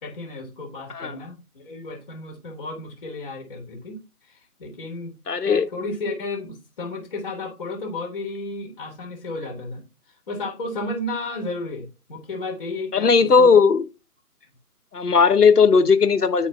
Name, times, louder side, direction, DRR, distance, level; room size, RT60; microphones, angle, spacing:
voice 1, 0.0-5.1 5.4-13.5, left 2 dB, 30° left, 1.5 m, -33 dB
voice 2, 5.3-5.6 12.9-13.8 14.9-16.5, left 5 dB, 90° left, 0.8 m, -16 dB
9.9 x 4.5 x 2.2 m
figure-of-eight pair, 145°, 45 cm